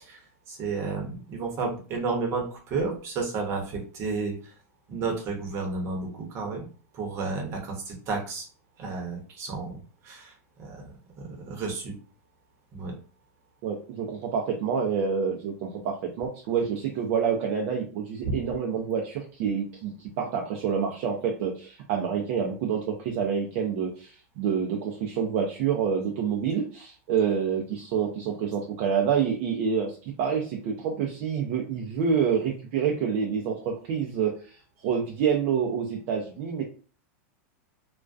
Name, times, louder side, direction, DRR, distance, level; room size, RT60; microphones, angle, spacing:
voice 1, 0.0-4.5 4.9-6.7 6.9-8.5 8.8-10.9 11.2-11.9 12.7-12.9 18.2-18.3, right 4 dB, 35° right, 1 dB, 0.8 m, -32 dB
voice 2, 13.6-29.9 30.2-34.6 34.8-36.6, right 7 dB, 50° right, 1 dB, 0.5 m, -27 dB
2.3 x 2.1 x 2.5 m, 0.38 s
supercardioid pair, 145°, 8 cm